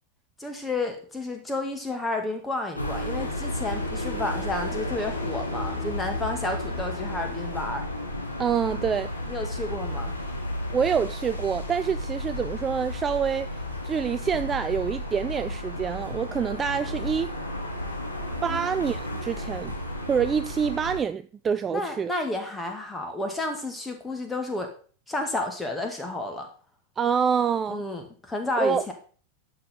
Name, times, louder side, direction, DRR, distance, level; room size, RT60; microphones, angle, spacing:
voice 1, 0.4-7.9 9.3-10.1 18.5-18.7 21.7-24.7 25.1-26.5 27.7-28.9, left 2 dB, 10° left, 2.1 m, -31 dB
sound 1, 2.7-21.0, left 1 dB, 85° left, 2.3 m, -33 dB
voice 2, 8.4-9.1 10.7-13.5 13.8-17.3 18.4-19.7 20.1-22.1 27.0-27.8 28.6-28.8, right 7 dB, 20° right, 0.3 m, -26 dB
11.0 x 6.3 x 3.9 m
figure-of-eight pair, 90°, 0 cm